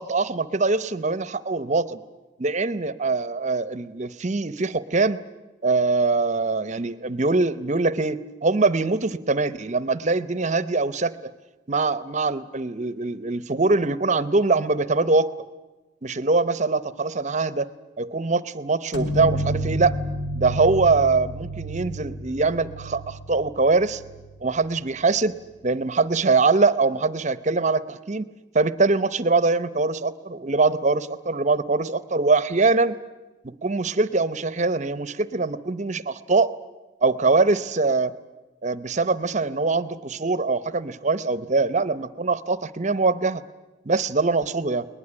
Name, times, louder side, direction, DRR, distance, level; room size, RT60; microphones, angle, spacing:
voice 1, 0.0-2.0 2.4-5.2 5.6-11.3 11.7-15.3 16.0-17.7 18.0-20.0 20.4-24.0 24.4-25.3 25.6-28.3 28.5-33.0 33.4-36.5 37.0-38.1 38.6-43.4 43.8-44.9, right 3 dB, 40° right, 15 dB, 0.8 m, -23 dB
sound 1, 18.9-24.5, right 1 dB, 65° left, 2.3 m, -30 dB
21.5 x 19.5 x 9.9 m, 1.1 s
head